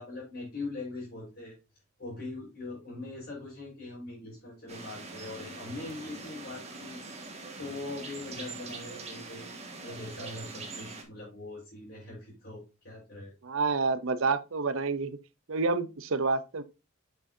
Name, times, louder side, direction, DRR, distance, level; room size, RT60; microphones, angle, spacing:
voice 1, 0.0-1.6 2.0-9.5 9.8-13.3, left 2 dB, 50° left, 4.5 m, -42 dB
sound 1, 4.7-11.0, right 3 dB, 30° right, 1.6 m, -43 dB
voice 2, 13.4-15.2 15.5-16.6, right 4 dB, 60° right, 0.6 m, -28 dB
7.5 x 6.8 x 2.7 m
head